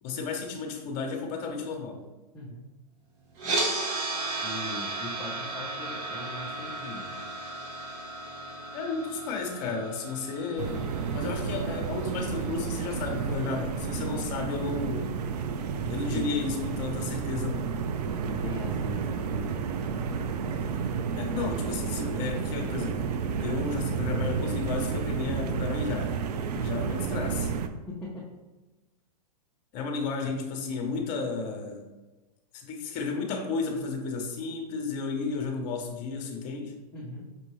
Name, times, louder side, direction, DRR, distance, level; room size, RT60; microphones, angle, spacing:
voice 1, 0.0-2.0 8.7-15.1 15.9-17.7 21.1-23.0 23.4-26.2 26.6-27.5 29.7-31.9 32.5-36.8, left 4 dB, 40° left, 3 dB, 0.9 m, -33 dB
voice 2, 2.3-2.7 4.4-7.3 15.8-16.3 17.9-20.4 26.5-26.8 27.9-28.3 36.9-37.3, left 1 dB, 5° left, -8 dB, 0.8 m, -40 dB
sound 1, 3.4-13.5, right 2 dB, 35° right, 0.9 m, -35 dB
sound 2, 10.6-27.7, right 6 dB, 70° right, 0.4 m, -31 dB
5.5 x 2.6 x 3.1 m, 1.1 s
hypercardioid pair, 130°, 21 cm